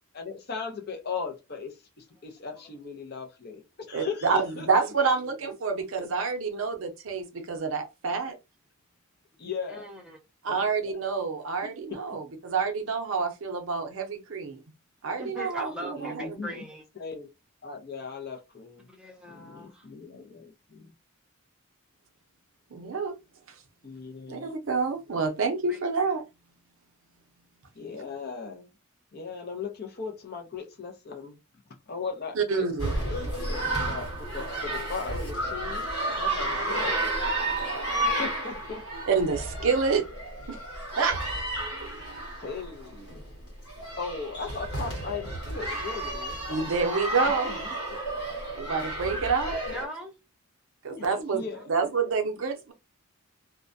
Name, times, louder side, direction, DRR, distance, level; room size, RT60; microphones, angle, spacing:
voice 1, 0.1-4.7 5.2-5.4 9.4-9.9 10.5-10.9 11.9-12.0 16.0-16.7 17.0-17.3 17.6-18.8 19.3-20.9 23.8-24.5 27.8-28.7 29.1-31.4 31.9-35.9 36.2-36.9 38.2-38.8 42.4-43.2 44.0-46.7 47.2-48.0 50.9-51.1 51.3-51.7, left 5 dB, 45° left, 0.5 m, -38 dB
voice 2, 3.9-8.3 10.4-14.6 15.0-16.4 22.7-23.1 24.3-26.2 32.3-32.9 39.1-40.0 40.5-41.2 41.9-42.0 46.5-47.6 48.6-49.6 50.8-51.4 51.7-52.7, right 5 dB, 65° right, 0.5 m, -28 dB
voice 3, 9.7-10.2 15.2-16.8 18.9-19.9 25.7-25.8 36.7-37.1 37.9-38.2 41.6-42.4 49.7-50.1, equal, 5° right, 0.5 m, -41 dB
sound 1, 32.8-49.9, right 1 dB, 70° left, 1.2 m, -32 dB
2.3 x 2.1 x 2.5 m
head